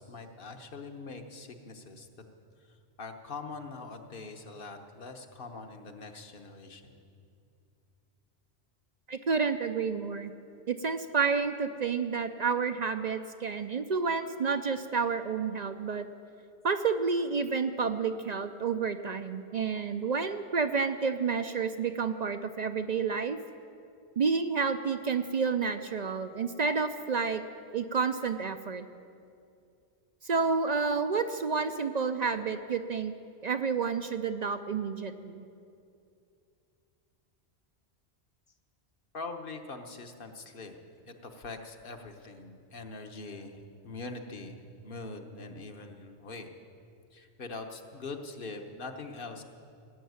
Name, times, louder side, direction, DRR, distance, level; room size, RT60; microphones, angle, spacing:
voice 1, 0.0-2.1 3.0-7.0 39.1-40.8 41.1-46.5 47.1-49.4, left 3 dB, 55° left, 5 dB, 1.2 m, -43 dB
voice 2, 9.1-10.3 10.7-16.1 16.6-23.4 24.2-27.4 27.7-28.9 30.2-33.1 33.4-35.5, right 5 dB, 50° right, 9 dB, 0.5 m, -30 dB
17.5 x 7.3 x 9.4 m, 2.5 s
omnidirectional pair, 1.1 m